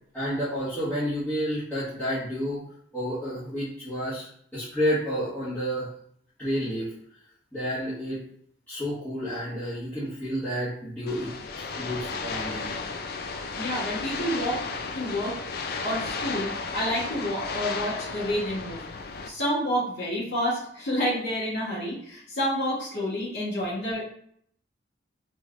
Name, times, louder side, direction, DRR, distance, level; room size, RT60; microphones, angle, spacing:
voice 1, 0.1-2.6 2.9-5.9 6.4-6.9 7.5-8.2 8.7-12.7, equal, 10° left, -14 dB, 1.4 m, -30 dB
sound 1, 11.1-19.3, left 4 dB, 50° left, 0.3 m, -34 dB
voice 2, 13.6-14.6 14.9-15.4 15.8-18.8 19.2-24.0, equal, 70° left, -8 dB, 1.5 m, -29 dB
4.1 x 3.2 x 2.5 m, 0.63 s
head